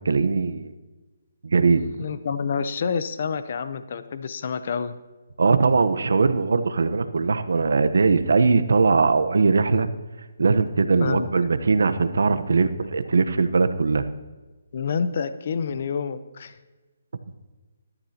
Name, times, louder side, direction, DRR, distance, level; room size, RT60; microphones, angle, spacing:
voice 1, 0.0-0.7 1.4-1.8 5.4-9.9 10.4-14.1, right 4 dB, 75° right, 11 dB, 1.0 m, -20 dB
voice 2, 2.0-5.0 11.0-11.3 14.7-16.6, left 6 dB, 50° left, 12 dB, 0.8 m, -28 dB
20.5 x 13.0 x 2.9 m, 1.2 s
hypercardioid pair, 160°, 0 cm